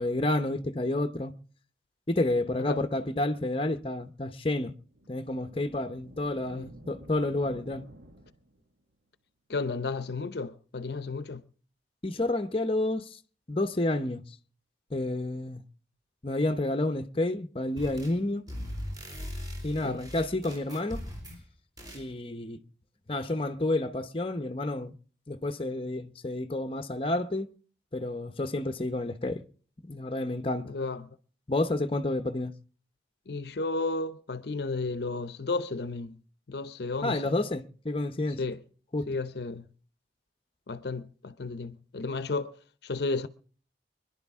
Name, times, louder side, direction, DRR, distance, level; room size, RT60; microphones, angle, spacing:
voice 1, 0.0-1.3 2.1-4.7 5.1-7.9 12.0-13.2 13.5-14.2 14.9-15.6 16.2-18.5 19.6-21.0 21.9-22.6 23.1-25.0 25.3-27.5 27.9-29.4 29.8-30.7 31.5-32.5 37.0-38.4 38.9-39.1, left 2 dB, 30° left, 0.8 m, -30 dB
sound 1, 4.9-8.7, right 1 dB, 70° right, 1.7 m, -51 dB
voice 2, 9.5-11.4 19.8-20.0 21.3-21.4 30.6-31.2 33.3-36.2 36.5-37.3 38.4-38.6 39.1-39.7 40.7-43.3, left 3 dB, 65° left, 0.6 m, -33 dB
sound 2, 17.8-18.2 18.5-21.4 21.8-22.1, equal, 20° right, 4.0 m, -39 dB
25.0 x 11.0 x 3.6 m
head